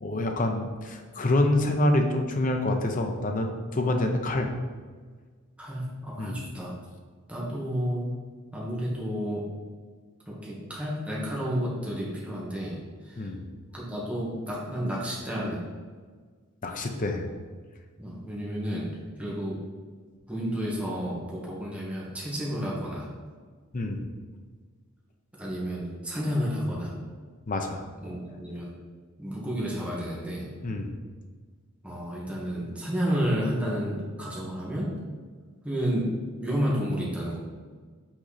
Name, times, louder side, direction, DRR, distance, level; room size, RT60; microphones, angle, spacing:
voice 1, 0.0-4.5 6.2-6.4 13.2-13.4 16.6-17.3 23.7-24.0 27.5-27.8 30.6-30.9, left 1 dB, 40° left, 4 dB, 0.7 m, -26 dB
voice 2, 5.6-6.7 7.3-8.0 8.5-9.5 10.3-12.8 13.0-13.3 13.7-15.6 18.0-18.9 19.2-19.6 20.3-23.1 25.3-26.9 28.0-28.7 29.2-30.5 31.8-35.0 35.6-36.1 36.4-37.4, equal, 5° right, -6 dB, 1.4 m, -31 dB
5.9 x 4.2 x 4.1 m, 1.5 s
head